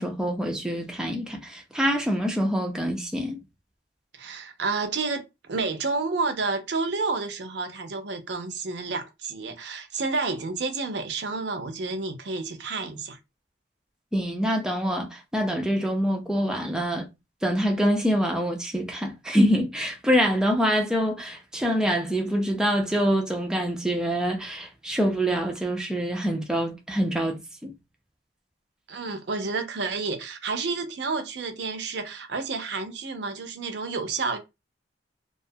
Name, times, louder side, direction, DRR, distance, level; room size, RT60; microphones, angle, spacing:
voice 1, 0.0-3.4 14.1-17.1 17.4-27.7, equal, 5° right, 0.4 m, -25 dB
voice 2, 4.1-13.2 28.9-34.4, right 4 dB, 60° right, 0.5 m, -30 dB
2.4 x 2.3 x 2.6 m
head